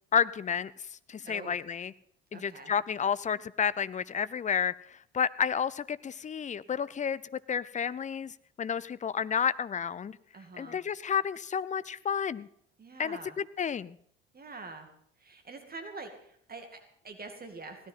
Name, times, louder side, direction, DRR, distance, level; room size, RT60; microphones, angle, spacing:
voice 1, 0.1-1.9 2.3-10.2 10.6-12.5 13.0-14.0, left 7 dB, 25° left, 18 dB, 0.6 m, -31 dB
voice 2, 1.2-1.6 2.3-2.7 10.3-10.8 12.8-13.4 14.3-14.9 15.2-17.8, right 3 dB, 30° right, 6 dB, 2.4 m, -45 dB
17.0 x 12.5 x 5.7 m, 0.66 s
figure-of-eight pair, 55°, 31 cm